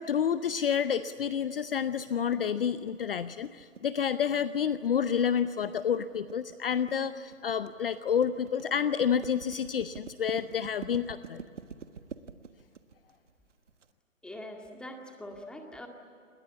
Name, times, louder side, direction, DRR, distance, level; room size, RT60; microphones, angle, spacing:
voice 1, 0.0-11.4, left 8 dB, 45° left, 13 dB, 0.8 m, -29 dB
sound 1, 2.3-13.9, right 6 dB, 60° right, 1.6 m, -47 dB
voice 2, 14.2-15.9, left 1 dB, ahead, 3 dB, 2.0 m, -43 dB
28.5 x 21.5 x 8.5 m, 2.6 s
figure-of-eight pair, 135°, 40 cm